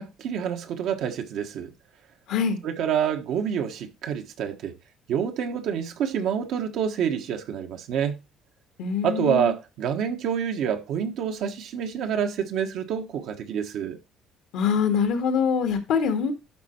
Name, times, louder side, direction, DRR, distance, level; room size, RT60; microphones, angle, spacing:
voice 1, 0.0-1.7 2.6-4.7 5.1-8.2 9.0-14.0, right 8 dB, 70° right, 1.3 m, -27 dB
voice 2, 2.3-2.6 8.8-9.5 14.5-16.3, left 6 dB, 80° left, 1.8 m, -24 dB
12.0 x 4.2 x 4.5 m
cardioid pair, 100°, 0 cm